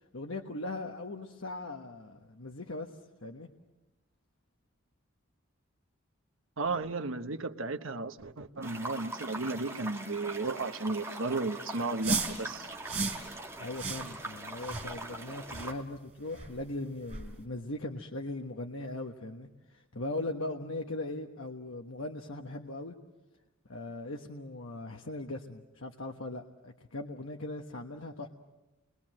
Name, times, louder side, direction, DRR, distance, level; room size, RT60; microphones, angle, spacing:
voice 1, 0.1-2.9 3.2-3.5 13.6-23.0 23.7-28.3, left 2 dB, 75° left, 1.3 m, -39 dB
voice 2, 6.6-12.7, right 3 dB, 75° right, 1.2 m, -34 dB
sound 1, 8.6-15.7, right 2 dB, 15° right, 1.8 m, -42 dB
sound 2, 12.0-12.4 12.9-13.2 13.8-14.1 14.6-14.9 15.5-15.7 16.4-16.5 17.1-17.3, right 3 dB, 30° right, 5.3 m, -33 dB
30.0 x 22.0 x 7.7 m
head